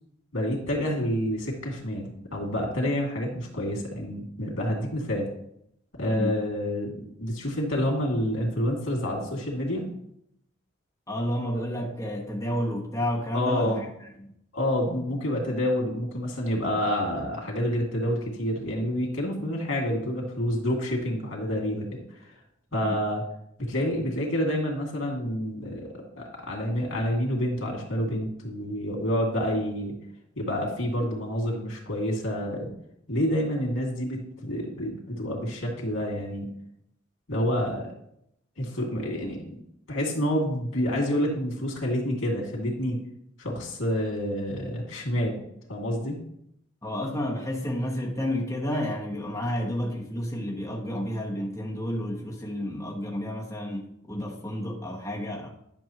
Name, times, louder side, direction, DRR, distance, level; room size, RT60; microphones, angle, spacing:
voice 1, 0.3-5.3 5.9-9.9 13.3-13.8 14.5-22.3 22.7-23.2 23.6-29.9 30.4-32.7 33.1-36.5 37.3-37.9 38.6-39.6 39.9-43.0 43.4-45.4 45.7-46.2, equal, 90° left, 2.4 m, -28 dB
voice 2, 6.1-6.4 11.1-13.9 14.2-14.3 22.7-23.0 46.8-55.5, equal, 15° left, 1.1 m, -31 dB
10.5 x 6.3 x 3.0 m
head